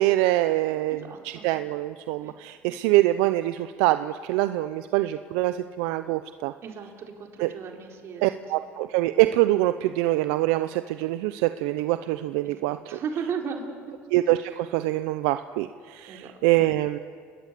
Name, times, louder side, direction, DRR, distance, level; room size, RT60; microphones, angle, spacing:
voice 1, 0.0-6.5 7.4-7.5 8.2-13.0 14.1-17.0, right 16 dB, 85° right, 11 dB, 0.7 m, -24 dB
voice 2, 0.9-1.5 2.2-2.3 2.7-2.8 6.6-8.3 12.4-14.0 16.1-16.3, right 6 dB, 55° right, 2 dB, 4.4 m, -36 dB
29.5 x 20.5 x 8.4 m, 2.1 s
supercardioid pair, 100°, 5 cm